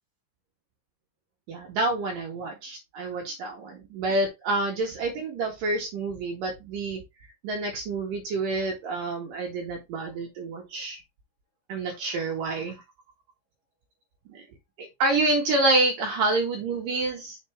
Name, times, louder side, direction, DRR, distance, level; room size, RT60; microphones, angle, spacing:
voice 1, 1.5-7.0 7.4-11.0 11.7-12.8 14.3-14.4 14.8-17.4, right 2 dB, 65° right, 1 dB, 2.6 m, -28 dB
6.6 x 4.4 x 3.3 m, 0.21 s
omnidirectional pair, 5.0 m